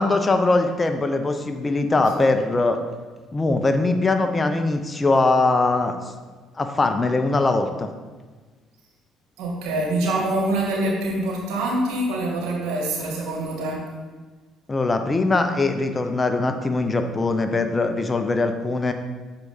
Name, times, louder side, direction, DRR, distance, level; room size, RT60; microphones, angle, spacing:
voice 1, 0.0-2.8 3.3-6.0 6.6-7.9 14.7-18.9, left 3 dB, 25° left, 7 dB, 0.8 m, -21 dB
voice 2, 9.4-13.8, right 1 dB, 70° right, -2 dB, 2.3 m, -25 dB
6.7 x 4.8 x 5.6 m, 1.3 s
hypercardioid pair, 65°, 0 cm